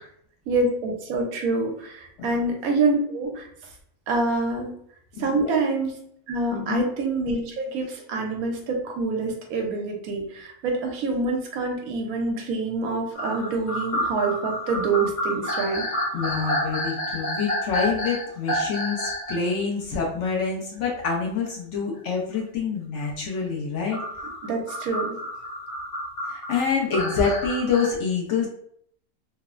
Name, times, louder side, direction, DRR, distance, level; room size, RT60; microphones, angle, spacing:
voice 1, 0.5-3.7 4.1-4.7 5.2-5.9 6.3-15.8 24.4-25.2, right 3 dB, 80° right, 2 dB, 1.1 m, -26 dB
voice 2, 5.2-5.5 6.5-6.9 16.1-24.0 26.3-28.5, left 5 dB, 65° left, -2 dB, 0.8 m, -26 dB
sound 1, 13.1-19.5 19.9-20.0 21.5-21.6 23.9-27.9, equal, 85° left, 1.3 m, -29 dB
3.0 x 2.0 x 2.3 m, 0.66 s
omnidirectional pair, 1.5 m